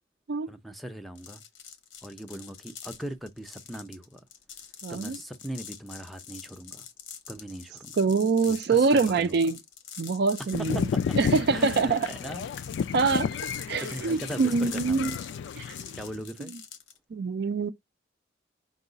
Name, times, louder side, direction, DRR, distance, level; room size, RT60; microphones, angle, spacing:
voice 1, 0.5-1.4 2.0-4.2 4.9-6.8 7.3-8.0 8.5-9.5 10.4-11.2 11.5-12.4 13.6-15.2 15.9-16.5, right 1 dB, ahead, 0.5 m, -40 dB
sound 1, 1.2-17.0, left 8 dB, 90° left, 1.0 m, -45 dB
voice 2, 4.8-5.2 8.0-9.6 10.0-10.9 11.1-12.1 12.9-13.3 13.7-15.1 15.6-15.7 17.1-17.7, right 4 dB, 55° right, 0.4 m, -24 dB
sound 2, 10.5-16.2, left 6 dB, 70° left, 0.3 m, -32 dB
5.4 x 2.3 x 3.8 m
head